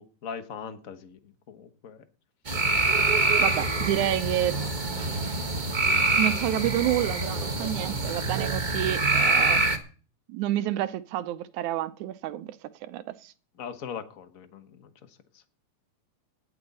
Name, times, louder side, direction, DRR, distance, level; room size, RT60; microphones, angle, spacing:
voice 1, 0.0-2.0 4.5-4.7 13.6-14.9 15.3-15.4, left 7 dB, 55° left, 0.9 m, -40 dB
sound 1, 2.5-9.8, right 2 dB, 30° right, 0.8 m, -25 dB
voice 2, 3.4-4.6 6.2-9.6 10.3-12.6 12.8-13.3, right 13 dB, 90° right, 2.2 m, -29 dB
18.0 x 10.5 x 4.2 m
omnidirectional pair, 3.3 m